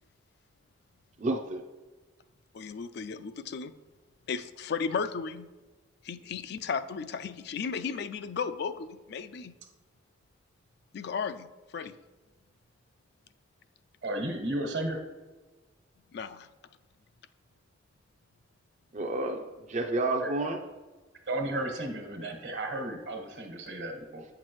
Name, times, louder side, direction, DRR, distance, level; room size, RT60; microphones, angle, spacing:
voice 1, 1.2-1.6 18.9-20.6, right 2 dB, 40° right, 2 dB, 0.5 m, -30 dB
voice 2, 2.5-3.7 4.3-5.5 6.0-9.6 10.9-11.9 16.1-16.5, left 5 dB, 60° left, 12 dB, 0.4 m, -35 dB
voice 3, 14.0-15.0 20.2-20.3 21.3-24.3, right 1 dB, 70° right, 3 dB, 1.4 m, -33 dB
8.4 x 5.9 x 3.1 m, 1.2 s
head